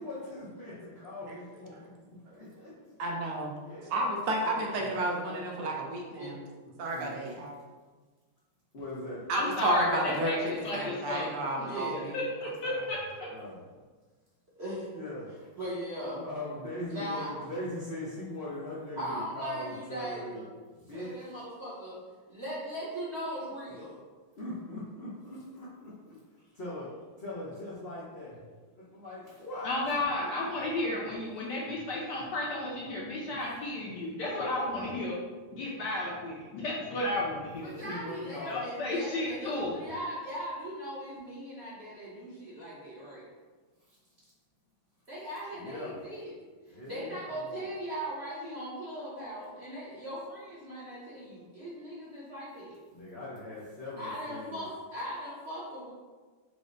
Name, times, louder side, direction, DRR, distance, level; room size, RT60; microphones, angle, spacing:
voice 1, 0.0-2.7 3.6-3.9 4.5-4.7 4.9-5.7 6.6-7.2 8.7-9.3 13.3-13.6 14.9-15.3 16.1-20.5 20.7-21.1 24.4-26.2 26.5-26.9 27.2-28.4 28.7-29.7 30.2-30.4 35.5-35.6 36.7-37.0 37.8-38.6 43.9-44.0 45.5-46.0 46.7-47.7 52.9-54.6, left 1 dB, 85° left, -8 dB, 0.5 m, -41 dB
voice 2, 3.0-3.5 3.8-6.4 6.8-7.6 9.3-12.8, right 1 dB, 85° right, -1 dB, 1.7 m, -32 dB
voice 3, 9.3-11.3 12.1-13.3 29.6-35.2 35.5-37.7 38.5-39.7, left 2 dB, 70° left, -4 dB, 1.1 m, -33 dB
voice 4, 11.6-12.0 14.6-14.9 15.6-16.2 16.8-17.4 18.9-20.5 20.9-22.0 22.3-24.0 37.6-43.3 45.1-46.3 46.8-52.7 54.0-55.9, equal, 55° right, -9 dB, 0.7 m, -39 dB
4.8 x 2.1 x 3.8 m, 1.4 s
omnidirectional pair, 2.3 m